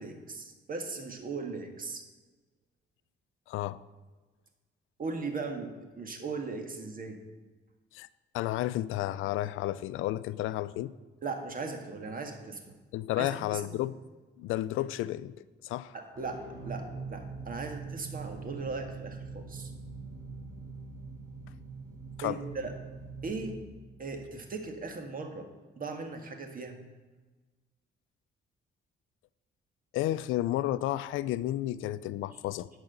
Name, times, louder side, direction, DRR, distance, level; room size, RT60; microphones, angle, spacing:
voice 1, 0.0-2.0 5.0-7.2 11.2-12.8 13.2-13.8 15.9-19.7 22.2-22.7 23.2-23.6 24.0-25.5 25.8-26.8, right 4 dB, 45° right, 5 dB, 1.8 m, -38 dB
voice 2, 3.5-3.8 7.9-8.1 8.3-10.9 12.9-14.0 14.4-15.9 22.2-22.4 29.9-32.7, left 14 dB, 90° left, 16 dB, 0.4 m, -32 dB
sound 1, 16.2-24.8, right 4 dB, 20° right, 3.1 m, -43 dB
11.0 x 4.9 x 8.0 m, 1.3 s
cardioid pair, 90°, 20 cm